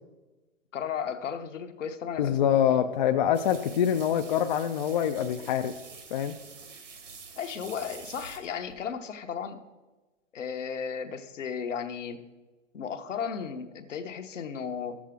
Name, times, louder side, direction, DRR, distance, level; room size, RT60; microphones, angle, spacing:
voice 1, 0.7-2.8 7.4-9.7 10.3-12.2 12.7-15.0, left 7 dB, 70° left, 7 dB, 1.1 m, -35 dB
voice 2, 2.2-5.7 6.1-6.4, left 9 dB, 40° left, 7 dB, 0.4 m, -25 dB
sound 1, 3.3-8.8, right 5 dB, 70° right, 1.8 m, -47 dB
12.5 x 7.4 x 3.7 m, 1.2 s
hypercardioid pair, 125°, 39 cm